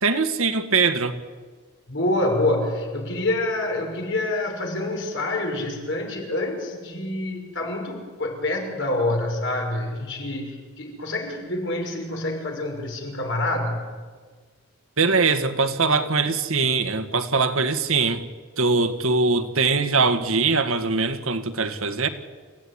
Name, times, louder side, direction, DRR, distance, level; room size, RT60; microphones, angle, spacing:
voice 1, 0.0-1.2 15.0-18.2 18.6-22.1, right 4 dB, 70° right, 8 dB, 1.7 m, -22 dB
voice 2, 1.9-13.9, left 2 dB, 55° left, 2 dB, 5.9 m, -27 dB
28.5 x 16.0 x 9.8 m, 1.5 s
head